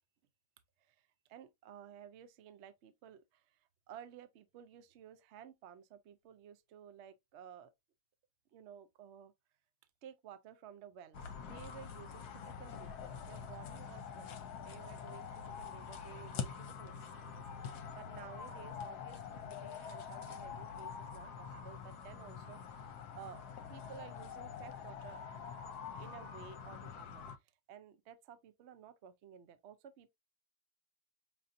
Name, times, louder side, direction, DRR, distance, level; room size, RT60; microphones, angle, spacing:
voice 1, 0.8-7.7 8.5-9.3 10.0-14.4 14.6-23.4 23.7-25.2 25.9-30.1, right 9 dB, 70° right, 0.6 m, -55 dB
sound 1, 11.1-27.4, left 7 dB, 70° left, 1.2 m, -46 dB
6.4 x 2.7 x 2.5 m
omnidirectional pair, 1.8 m